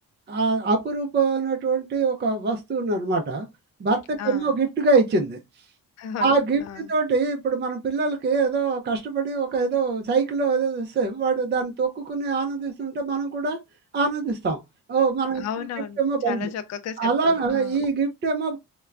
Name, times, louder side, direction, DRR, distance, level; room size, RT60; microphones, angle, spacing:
voice 1, 0.3-3.5 3.8-5.4 6.2-13.6 13.9-14.6 14.9-15.4 16.0-16.5 17.0-18.6, right 4 dB, 30° right, 0.5 m, -24 dB
voice 2, 4.2-4.6 6.0-6.9 15.3-16.0 16.2-17.8, left 8 dB, 50° left, 0.5 m, -34 dB
4.3 x 2.2 x 2.4 m
cardioid pair, 135°, 35 cm